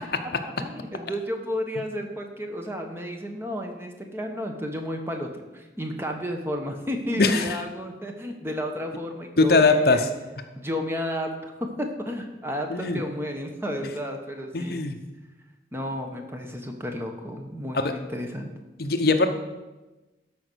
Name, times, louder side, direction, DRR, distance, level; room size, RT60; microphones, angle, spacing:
voice 1, 0.4-10.0 10.6-11.5 11.8-14.8 15.7-18.5, equal, 15° right, 3 dB, 1.0 m, -32 dB
voice 2, 7.2-7.6 9.4-10.1 12.7-13.0 14.5-15.0 17.7-17.9 18.8-19.3, left 3 dB, 55° left, 7 dB, 0.8 m, -21 dB
13.0 x 5.2 x 6.2 m, 1.1 s
head